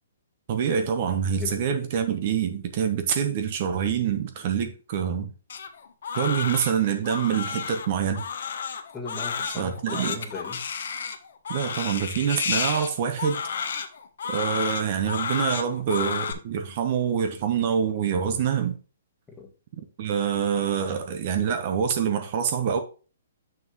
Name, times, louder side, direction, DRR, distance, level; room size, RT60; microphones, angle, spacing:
voice 1, 0.5-5.3 6.1-8.2 9.6-10.2 11.5-13.4 14.3-18.8 20.0-22.8, right 8 dB, 45° right, 1.0 m, -26 dB
voice 2, 1.1-1.6 8.9-10.6 18.1-18.3 19.3-19.5, left 3 dB, 10° left, 1.5 m, -38 dB
Crying sobbing, 5.5-16.3, left 6 dB, 70° left, 1.0 m, -31 dB
7.3 x 6.2 x 3.1 m
hypercardioid pair, 150°, 0 cm